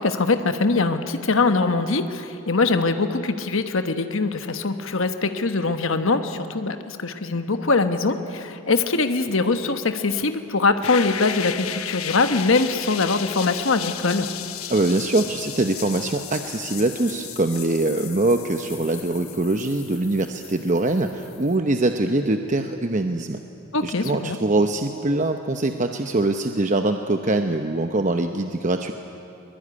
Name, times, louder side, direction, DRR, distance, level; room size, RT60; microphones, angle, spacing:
voice 1, 0.0-14.3 23.7-24.4, left 3 dB, 65° left, 8 dB, 1.2 m, -22 dB
sound 1, 10.8-21.5, left 10 dB, 85° left, 1.1 m, -35 dB
voice 2, 14.7-23.4 23.8-28.9, right 2 dB, 35° right, 6 dB, 0.9 m, -23 dB
23.0 x 21.0 x 9.8 m, 2.7 s
head